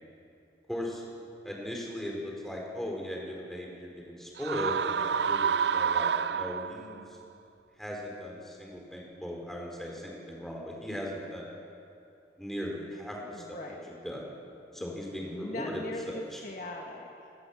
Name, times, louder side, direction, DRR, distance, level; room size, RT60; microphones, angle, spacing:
voice 1, 0.7-1.0 1.4-7.2 7.8-11.5 12.4-13.6 14.0-14.3 14.7-16.4, left 1 dB, ahead, -1 dB, 4.6 m, -38 dB
sound 1, 4.4-7.0, right 7 dB, 65° right, 0.5 m, -28 dB
voice 2, 13.2-14.0 14.8-17.3, left 1 dB, 45° left, 0 dB, 1.9 m, -41 dB
29.0 x 18.5 x 7.4 m, 2.7 s
head